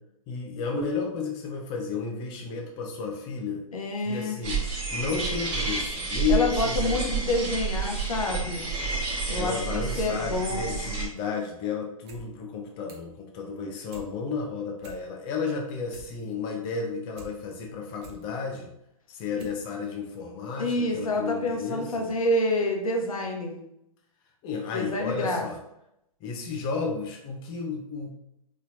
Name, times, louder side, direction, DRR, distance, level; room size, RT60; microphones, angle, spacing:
voice 1, 0.3-3.6 4.0-4.6 4.9-7.1 9.3-18.7 19.1-22.1 24.4-25.6 26.2-28.1, left 5 dB, 25° left, 0 dB, 0.6 m, -32 dB
voice 2, 3.7-4.4 6.3-8.7 9.3-10.8 19.4-19.5 20.6-23.6 24.7-25.4, left 1 dB, 70° left, 1 dB, 0.9 m, -28 dB
sound 1, 4.4-11.1, right 5 dB, 30° right, 1.2 m, -30 dB
sound 2, 11.9-12.3 12.5-13.2 13.5-14.1 14.5-14.6 14.8-15.4 15.7-17.3 17.7-18.2 18.8-18.9 19.4-19.6 19.9-20.0, right 1 dB, 50° right, 0.9 m, -48 dB
4.0 x 3.1 x 2.6 m, 0.81 s
figure-of-eight pair, 115°, 19 cm